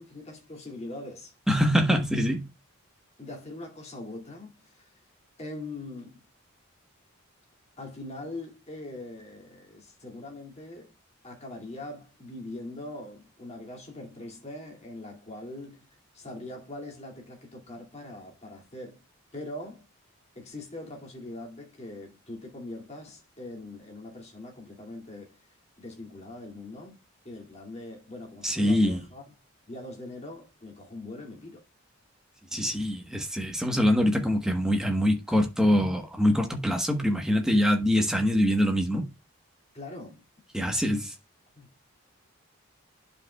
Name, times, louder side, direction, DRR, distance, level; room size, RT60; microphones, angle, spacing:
voice 1, 0.0-1.3 3.2-5.0 5.4-6.2 7.8-10.9 11.2-15.9 16.1-19.0 19.3-19.8 20.4-25.4 25.8-27.0 27.2-29.2 29.7-31.6 39.7-40.2 41.6-41.7, left 2 dB, 30° left, 2.4 m, -42 dB
voice 2, 1.5-2.5 28.4-29.0 32.5-39.1 40.5-41.1, equal, 5° right, 1.2 m, -24 dB
11.0 x 5.2 x 2.3 m
head